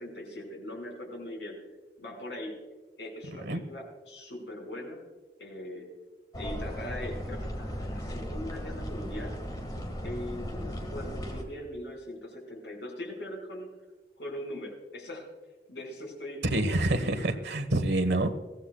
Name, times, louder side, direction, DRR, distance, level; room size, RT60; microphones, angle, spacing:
voice 1, 0.0-1.6 2.0-2.6 3.0-5.0 5.4-5.9 6.4-9.4 10.0-13.7 14.2-15.3 15.7-16.4 16.8-17.2, left 1 dB, 85° left, 0 dB, 5.0 m, -40 dB
sound 1, 6.3-11.4, equal, 25° left, 1.8 m, -36 dB
voice 2, 16.4-18.3, right 1 dB, 75° right, 8 dB, 1.2 m, -27 dB
21.5 x 16.0 x 2.3 m, 1.3 s
head